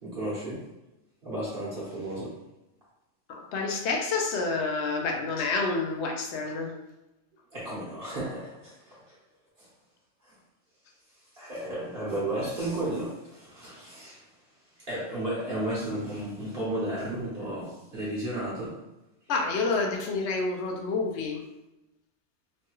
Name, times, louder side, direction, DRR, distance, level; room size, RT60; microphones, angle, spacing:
voice 1, 0.0-0.6 1.2-2.4 7.5-9.1 9.6-9.7 10.2-10.3 11.3-14.2 14.9-18.8, right 1 dB, 50° right, -8 dB, 1.1 m, -33 dB
voice 2, 3.3-6.7 19.3-21.4, left 3 dB, 70° left, 2 dB, 0.9 m, -28 dB
3.1 x 2.2 x 3.0 m, 0.96 s
omnidirectional pair, 1.2 m